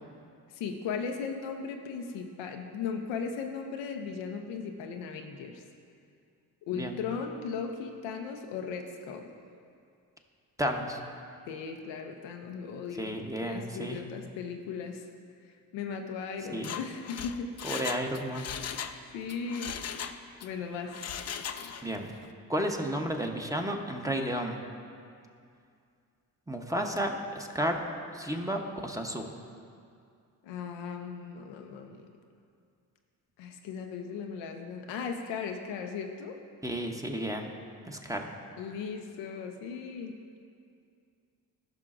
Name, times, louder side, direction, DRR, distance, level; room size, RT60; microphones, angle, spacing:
voice 1, 0.5-5.6 6.7-9.3 11.5-15.1 15.7-17.5 19.1-19.8 20.4-21.0 30.4-32.1 33.4-36.4 38.6-40.2, left 6 dB, 85° left, 4 dB, 0.6 m, -37 dB
voice 2, 10.6-11.0 13.0-14.0 16.5-16.8 17.6-18.5 21.8-22.1 22.5-24.6 26.5-27.8 28.1-29.3 36.6-37.5 37.9-38.3, equal, 10° right, 2 dB, 0.9 m, -32 dB
Mechanisms, 16.5-19.0 19.3-20.5 20.9-21.9 22.2-22.3, left 8 dB, 40° left, 0.4 m, -38 dB
14.5 x 5.7 x 2.5 m, 2.4 s
supercardioid pair, 45°, 43 cm